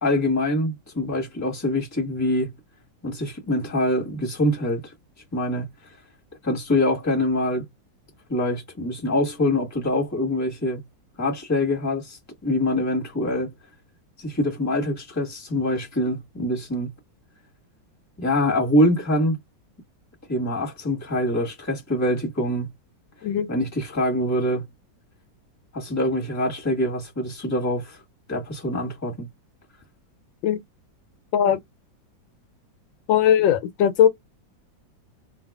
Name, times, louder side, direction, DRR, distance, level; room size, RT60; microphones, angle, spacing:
voice 1, 0.0-2.5 3.0-4.8 5.3-5.7 6.4-7.6 8.3-10.8 11.2-13.5 14.2-16.9 18.2-19.4 20.3-22.7 23.5-24.7 25.7-28.0 28.3-29.3, left 1 dB, 10° left, 1.1 m, -24 dB
voice 2, 33.1-34.1, left 9 dB, 80° left, 1.3 m, -19 dB
2.8 x 2.5 x 3.4 m
omnidirectional pair, 2.1 m